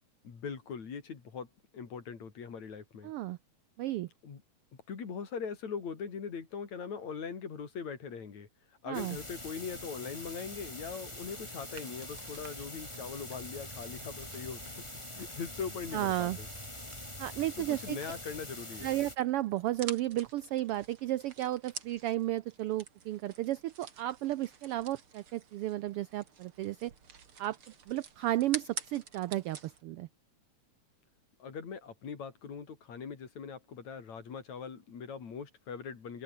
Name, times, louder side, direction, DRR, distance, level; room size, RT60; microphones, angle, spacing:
voice 1, 0.2-1.5 1.7-3.1 4.2-4.4 4.9-8.5 8.8-14.8 15.2-16.5 17.6-18.9 31.4-36.2, left 6 dB, 70° left, 4.7 m, -41 dB
voice 2, 3.0-3.4 3.8-4.1 8.9-9.2 15.9-16.4 17.2-18.0 18.8-26.9 27.4-27.6 27.9-30.1, right 15 dB, 85° right, 1.2 m, -33 dB
sound 1, 8.9-19.2, left 1 dB, 10° left, 4.5 m, -44 dB
sound 2, 11.7-29.8, right 6 dB, 50° right, 3.2 m, -49 dB
open air
omnidirectional pair, 3.3 m